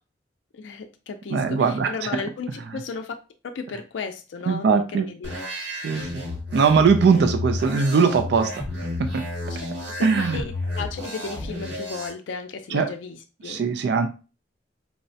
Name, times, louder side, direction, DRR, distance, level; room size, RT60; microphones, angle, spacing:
voice 1, 0.5-3.2 3.4-5.3 9.6-13.6, left 5 dB, 85° left, 5 dB, 0.4 m, -35 dB
voice 2, 1.3-2.2 4.5-5.1 5.7-6.2 6.5-8.6 9.0-9.2 10.0-10.4 12.7-12.9 13.4-14.1, right 5 dB, 60° right, 7 dB, 0.3 m, -21 dB
sound 1, 5.2-12.1, left 2 dB, 90° right, 1.6 m, -31 dB
4.6 x 2.1 x 2.6 m, 0.33 s
head